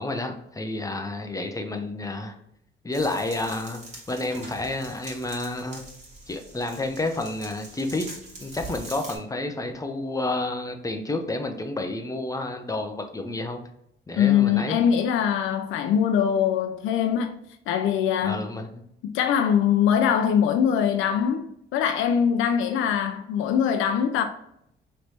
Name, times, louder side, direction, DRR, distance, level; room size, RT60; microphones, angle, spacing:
voice 1, 0.0-2.3 2.8-3.8 4.1-5.8 6.3-8.1 8.4-13.6 14.1-14.8 18.2-18.8, left 2 dB, 15° left, 0.6 m, -30 dB
sound 1, 2.9-9.2, right 2 dB, 35° right, 1.7 m, -43 dB
voice 2, 14.2-17.4 17.7-18.5 19.0-24.2, left 8 dB, 85° left, 0.4 m, -22 dB
3.2 x 3.1 x 4.1 m
cardioid pair, 90°, 20 cm